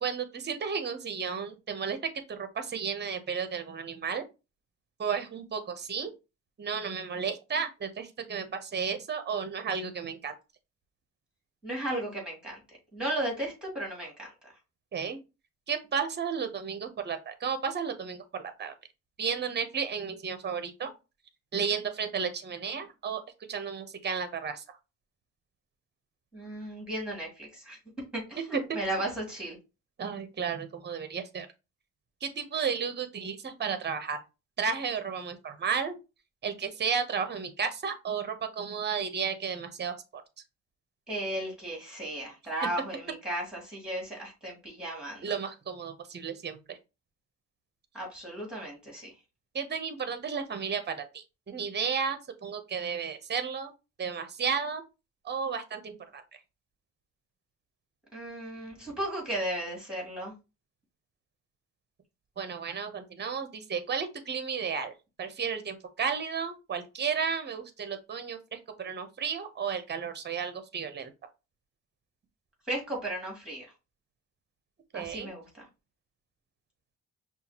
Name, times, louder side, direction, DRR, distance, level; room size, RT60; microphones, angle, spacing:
voice 1, 0.0-2.0 2.3-4.2 5.0-6.1 6.6-10.3 14.9-15.2 15.7-18.2 18.6-18.7 19.2-20.9 21.5-23.2 23.5-24.6 30.0-31.5 32.2-34.2 34.6-36.0 36.4-40.2 45.2-46.8 49.5-53.7 54.0-54.8 55.2-56.2 62.4-64.9 65.2-71.1 74.9-75.3, right 6 dB, 30° right, 0.7 m, -33 dB
voice 2, 11.6-12.6 12.9-14.5 26.3-27.8 28.1-29.6 41.1-45.3 47.9-49.1 58.1-60.3 72.7-73.7 74.9-75.6, right 1 dB, ahead, 2.3 m, -35 dB
5.6 x 2.4 x 2.9 m
cardioid pair, 120°, 34 cm